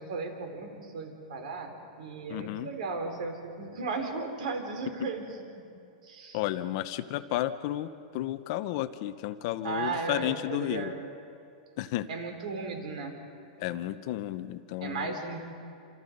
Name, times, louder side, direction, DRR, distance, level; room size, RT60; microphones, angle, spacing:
voice 1, 0.0-5.2 6.0-6.4 9.6-11.1 12.1-13.1 14.8-15.4, right 4 dB, 65° right, 4 dB, 4.4 m, -35 dB
voice 2, 2.3-2.7 5.0-5.1 6.3-10.9 11.8-12.1 13.6-15.1, left 14 dB, 40° left, 11 dB, 0.8 m, -32 dB
28.0 x 27.5 x 5.4 m, 2.5 s
supercardioid pair, 170°, 4 cm